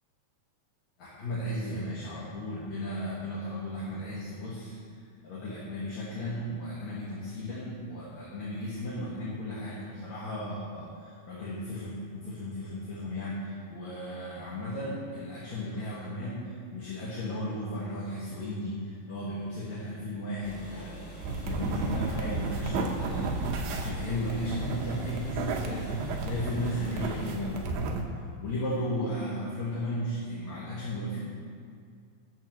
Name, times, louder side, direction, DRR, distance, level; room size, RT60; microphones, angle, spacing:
voice 1, 1.0-4.7 5.2-23.4 23.7-31.2, left 1 dB, 60° left, -8 dB, 2.4 m, -35 dB
sound 1, 20.4-27.3, equal, 30° left, 3.0 m, -45 dB
sound 2, 21.2-28.0, right 3 dB, 85° right, 2.9 m, -32 dB
20.0 x 7.1 x 3.0 m, 2.2 s
omnidirectional pair, 4.5 m